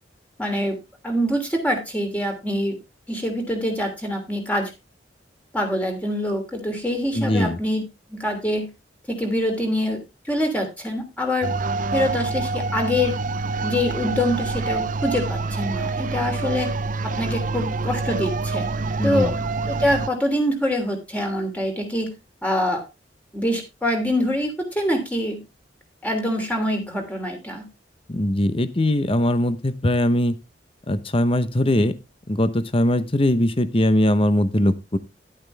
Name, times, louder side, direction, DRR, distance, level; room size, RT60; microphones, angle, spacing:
voice 1, 0.4-0.8 1.0-2.8 3.1-4.7 5.5-7.8 8.1-8.7 9.1-10.0 10.3-11.5 11.9-13.1 13.6-16.7 17.0-18.7 19.0-19.3 19.6-22.1 22.4-22.8 23.3-25.4 26.0-27.6, left 1 dB, 10° left, 3 dB, 3.0 m, -25 dB
voice 2, 7.1-7.6 19.0-19.3 28.1-30.3 30.9-31.9 32.3-35.0, left 1 dB, 30° left, 14 dB, 0.8 m, -21 dB
sound 1, 11.4-20.1, right 3 dB, 45° right, 0.6 m, -26 dB
11.5 x 8.7 x 3.4 m, 0.24 s
head